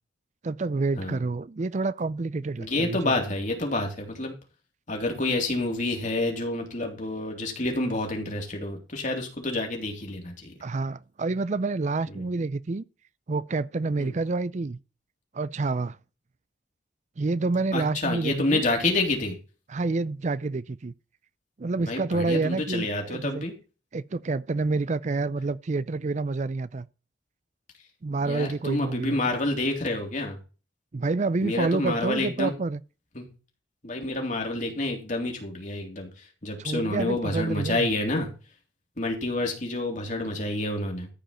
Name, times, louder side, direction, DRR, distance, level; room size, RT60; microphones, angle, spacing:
voice 1, 0.4-3.1 10.6-12.8 13.3-14.8 15.3-16.0 17.2-18.7 19.7-20.9 21.6-23.4 23.9-26.9 28.0-29.4 30.9-32.8 36.6-37.9, right 3 dB, 40° right, 0.4 m, -28 dB
voice 2, 2.6-4.3 4.9-10.5 14.0-14.1 17.7-19.3 21.8-23.5 28.2-30.4 31.4-32.5 33.2-33.3 33.8-36.1 36.4-38.3 39.0-41.1, left 2 dB, 45° left, 3.5 m, -28 dB
14.0 x 5.2 x 5.6 m
head